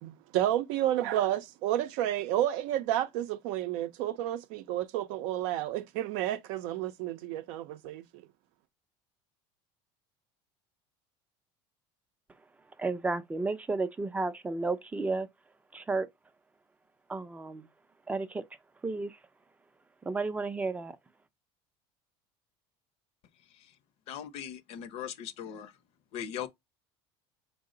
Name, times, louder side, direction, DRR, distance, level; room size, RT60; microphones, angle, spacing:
voice 1, 0.0-8.0, right 12 dB, 70° right, 0.5 m, -31 dB
voice 2, 12.8-15.3 15.7-16.1 17.1-17.7 18.1-18.4 18.8-19.2 20.1-21.0, right 3 dB, 10° right, 0.4 m, -32 dB
voice 3, 24.1-25.7 26.1-26.5, left 9 dB, 55° left, 0.6 m, -39 dB
4.6 x 2.0 x 3.7 m
supercardioid pair, 130°, 12 cm